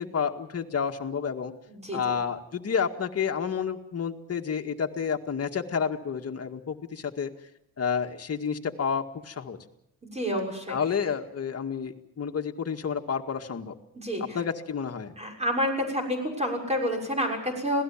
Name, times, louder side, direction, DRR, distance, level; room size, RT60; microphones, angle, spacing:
voice 1, 0.0-1.5 1.9-7.3 7.8-9.6 10.7-13.7 14.3-15.1, left 6 dB, 45° left, 4 dB, 2.0 m, -30 dB
voice 2, 1.7-2.2 10.1-10.8 13.9-14.4 15.2-17.8, equal, 20° right, 2 dB, 6.7 m, -29 dB
26.5 x 18.5 x 7.4 m, 0.81 s
cardioid pair, 125°, 36 cm